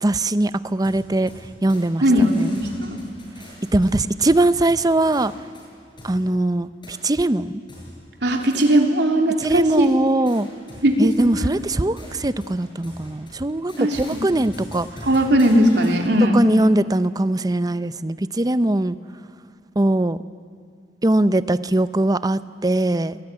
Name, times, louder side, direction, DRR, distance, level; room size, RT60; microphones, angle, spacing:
voice 1, 0.0-1.3 1.6-2.5 3.7-5.3 6.0-7.6 9.4-10.5 11.0-14.9 16.3-19.0 19.8-20.2 21.0-23.2, right 1 dB, 20° right, 14 dB, 0.7 m, -21 dB
sound 1, 0.8-1.9 2.1-6.2 6.8-7.0 7.7-9.1 9.4-16.2, equal, 30° left, 7.4 m, -42 dB
voice 2, 2.0-3.0 8.2-9.9 10.8-11.3 13.8-14.0 15.0-16.4, equal, 75° right, 2 dB, 3.3 m, -18 dB
29.0 x 20.0 x 9.8 m, 2.1 s
head